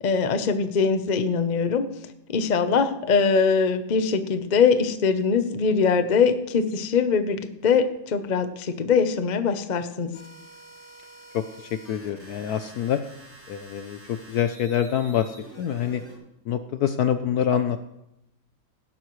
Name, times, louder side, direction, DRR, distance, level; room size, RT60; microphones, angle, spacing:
voice 1, 0.0-1.9 2.3-10.1, left 5 dB, 55° left, 9 dB, 0.5 m, -22 dB
sound 1, 10.1-16.2, right 1 dB, 5° right, 4.7 m, -48 dB
voice 2, 11.3-13.0 13.5-16.0 16.5-17.8, left 9 dB, 70° left, 10 dB, 0.9 m, -26 dB
17.0 x 12.0 x 3.2 m, 0.83 s
omnidirectional pair, 2.2 m